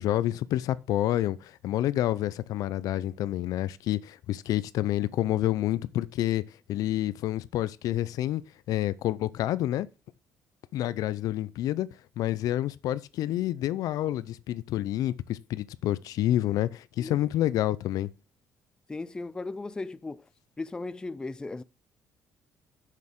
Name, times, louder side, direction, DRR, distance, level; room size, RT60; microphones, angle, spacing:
voice 1, 0.0-6.4 6.7-8.4 8.7-9.9 10.7-11.9 12.2-18.1, left 13 dB, 75° left, 0.6 m, -28 dB
voice 2, 18.9-20.3 20.6-21.6, left 3 dB, 15° left, 0.4 m, -36 dB
6.9 x 6.6 x 6.6 m
cardioid pair, 130°, 6 cm